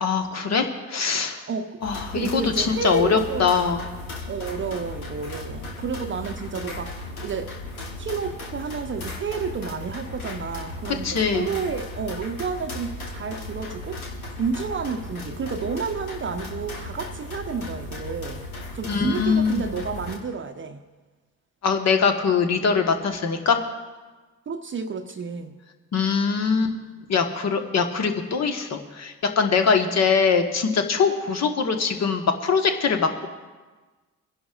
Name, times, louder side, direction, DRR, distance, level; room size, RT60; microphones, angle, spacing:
voice 1, 0.0-1.4 1.8-3.8 11.0-11.5 18.9-19.6 21.6-23.6 25.9-26.7 27.1-33.3, left 5 dB, 40° left, 5 dB, 1.4 m, -22 dB
voice 2, 1.5-1.8 2.1-3.5 4.3-7.5 8.0-14.0 14.3-18.4 18.7-20.8 24.5-25.6, right 5 dB, 30° right, 6 dB, 0.8 m, -30 dB
sound 1, 1.8-20.2, left 2 dB, 85° left, 1.5 m, -36 dB
29.0 x 11.0 x 2.5 m, 1.3 s
figure-of-eight pair, 55°, 42 cm